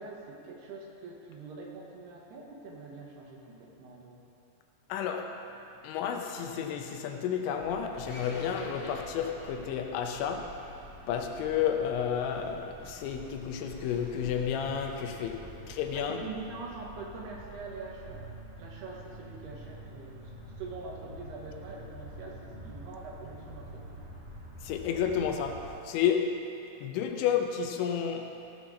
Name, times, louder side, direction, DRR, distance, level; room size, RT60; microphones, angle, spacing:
voice 1, 0.0-4.3 15.4-15.7 15.9-20.3 20.6-24.0, right 3 dB, 70° right, -1 dB, 3.0 m, -44 dB
voice 2, 4.9-5.4 5.8-10.5 11.1-16.2 24.6-26.4 26.8-28.3, left 8 dB, 80° left, 4 dB, 3.0 m, -31 dB
sound 1, 7.5-25.7, equal, 45° right, 4.4 m, -48 dB
sound 2, 8.0-16.0, left 2 dB, 55° left, 1.6 m, -49 dB
16.5 x 5.8 x 6.3 m, 2.8 s
omnidirectional pair, 5.4 m